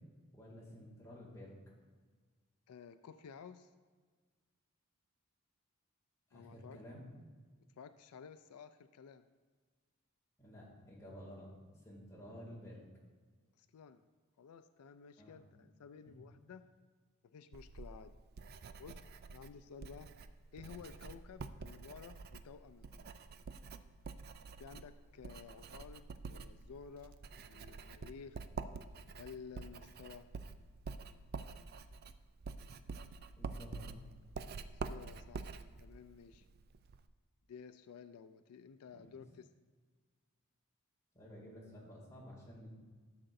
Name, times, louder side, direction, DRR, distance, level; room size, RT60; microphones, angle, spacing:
voice 1, 0.3-1.6 6.3-7.1 10.4-11.5 11.8-12.8 15.2-15.4 20.6-20.7 33.3-33.9 38.9-39.2 41.1-42.7, equal, 15° left, -6 dB, 2.3 m, -52 dB
voice 2, 2.7-3.7 6.3-6.8 7.8-9.2 13.6-14.0 14.4-16.6 17.2-18.2 18.8-19.0 19.3-20.1 20.5-23.1 24.6-28.4 29.1-30.3 34.7-35.5 35.8-36.5 37.5-39.5, left 6 dB, 85° left, 11 dB, 0.4 m, -53 dB
Writing, 17.5-37.1, right 4 dB, 45° right, 0.3 m, -48 dB
13.0 x 6.7 x 2.6 m, 1.5 s
head